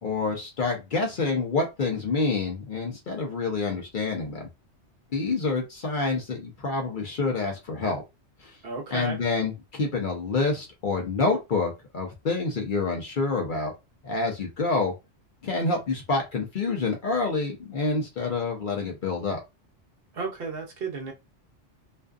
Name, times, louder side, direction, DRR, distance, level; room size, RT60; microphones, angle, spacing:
voice 1, 0.0-4.5 5.1-8.0 8.4-8.6 8.9-13.7 14.0-14.9 15.4-19.4, left 3 dB, 50° left, 0.7 m, -27 dB
voice 2, 8.6-9.2 20.1-21.1, right 4 dB, 60° right, 0.8 m, -33 dB
2.5 x 2.4 x 2.3 m
omnidirectional pair, 1.2 m